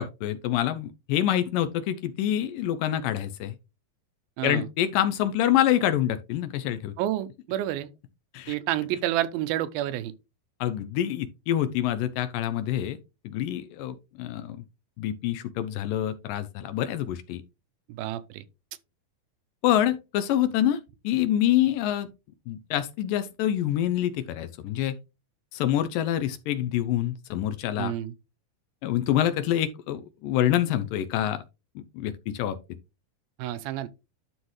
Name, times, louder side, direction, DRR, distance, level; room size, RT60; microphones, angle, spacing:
voice 1, 0.0-3.6 4.4-6.9 8.3-8.6 10.6-13.0 13.2-14.6 15.0-17.4 19.6-20.8 21.0-22.1 22.5-25.0 25.5-27.9 28.8-31.4 31.8-32.6, left 11 dB, 80° left, 2.2 m, -26 dB
voice 2, 7.0-7.9 8.5-10.1 17.9-18.4 27.8-28.1 33.4-33.9, right 13 dB, 85° right, 2.5 m, -29 dB
11.5 x 3.9 x 3.1 m
omnidirectional pair, 4.3 m